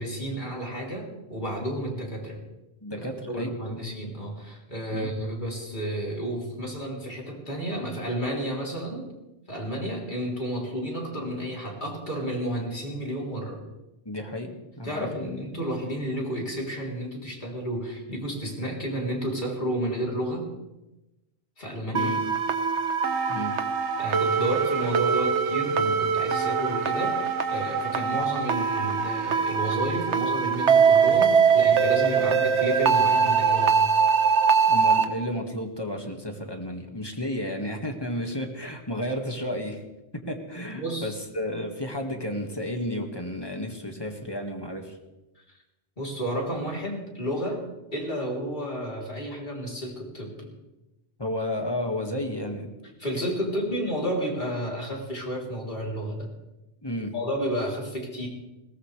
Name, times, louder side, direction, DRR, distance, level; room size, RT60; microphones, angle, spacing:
voice 1, 0.0-2.4 2.9-9.1 9.5-13.6 14.8-20.5 21.6-22.1 24.0-33.8 40.7-41.2 46.0-50.5 53.0-56.3 57.1-58.3, right 1 dB, 45° left, -2 dB, 3.7 m, -31 dB
voice 2, 2.8-3.9 4.9-5.1 14.1-15.3 21.9-22.2 23.3-23.5 34.7-39.8 40.1-45.0 51.2-52.7 56.8-57.1, left 1 dB, 20° left, 3 dB, 1.9 m, -32 dB
sound 1, 21.9-35.0, right 6 dB, 80° right, 1.4 m, -22 dB
20.5 x 18.5 x 3.4 m, 0.99 s
omnidirectional pair, 1.2 m